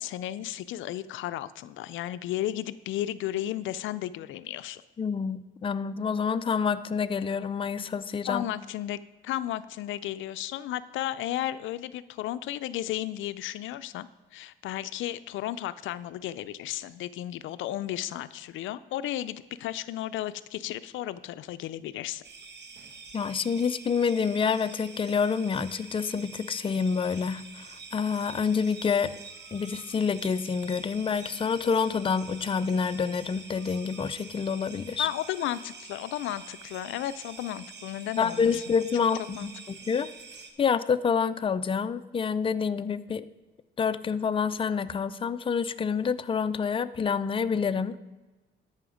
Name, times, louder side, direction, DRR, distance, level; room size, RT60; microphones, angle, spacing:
voice 1, 0.0-4.8 8.3-9.0 9.2-22.2 35.0-38.6 39.4-39.5, left 13 dB, 80° left, 15 dB, 0.4 m, -34 dB
voice 2, 5.0-8.4 23.1-29.1 29.5-35.1 38.2-40.1 40.6-43.3 43.8-48.0, left 6 dB, 25° left, 11 dB, 0.5 m, -27 dB
sound 1, 22.2-40.5, right 4 dB, 60° right, 1.4 m, -46 dB
13.0 x 5.7 x 5.0 m, 1.2 s
cardioid pair, 90°, 20 cm